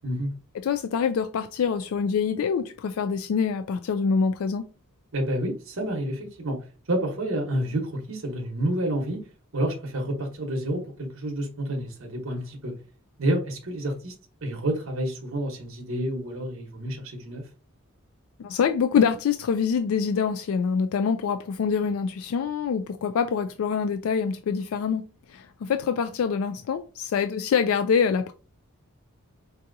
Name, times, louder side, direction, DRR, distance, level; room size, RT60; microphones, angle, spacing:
voice 1, 0.6-4.6 18.4-25.0 25.3-28.3, left 6 dB, 70° left, 0.3 m, -25 dB
voice 2, 5.1-6.6 6.9-9.2 9.5-12.7 13.2-14.1 14.4-17.5, right 1 dB, 65° right, 0.9 m, -29 dB
4.6 x 2.7 x 2.5 m
head